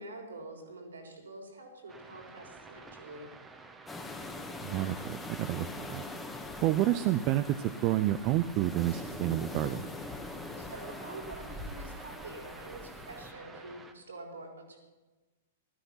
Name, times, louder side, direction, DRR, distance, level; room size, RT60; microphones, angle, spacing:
voice 1, 0.0-3.3 10.6-14.8, right 2 dB, 75° right, 2 dB, 3.9 m, -46 dB
sound 1, 1.9-13.9, right 3 dB, 15° right, 1.4 m, -50 dB
sound 2, 3.9-13.3, left 2 dB, 10° left, 1.7 m, -43 dB
voice 2, 4.6-6.0 6.6-9.8, right 13 dB, 40° right, 10 dB, 0.6 m, -29 dB
15.5 x 13.0 x 5.8 m, 1.2 s
figure-of-eight pair, 105°, 0 cm